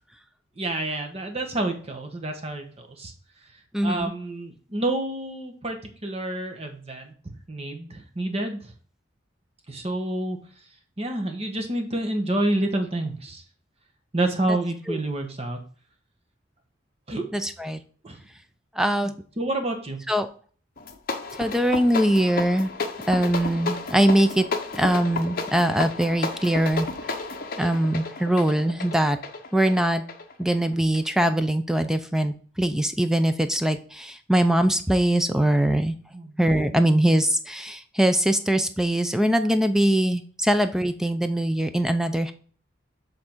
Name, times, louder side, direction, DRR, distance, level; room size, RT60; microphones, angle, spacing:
voice 1, 0.6-3.1 3.8-5.8 6.0-8.7 9.7-10.4 11.0-13.4 14.1-15.6 17.1-17.3 18.0-18.2 19.4-20.0 36.1-36.3, right 1 dB, 30° right, 4 dB, 1.1 m, -28 dB
voice 2, 3.7-4.1 14.9-15.0 17.3-17.8 18.8-19.1 20.1-20.3 21.4-22.7 23.1-24.5 24.7-26.9 27.6-29.2 29.5-30.0 30.4-35.9 36.4-42.3, right 1 dB, 5° right, 9 dB, 0.4 m, -22 dB
sound 1, 20.8-31.1, left 3 dB, 45° left, 0.8 m, -32 dB
7.6 x 3.7 x 4.5 m, 0.43 s
head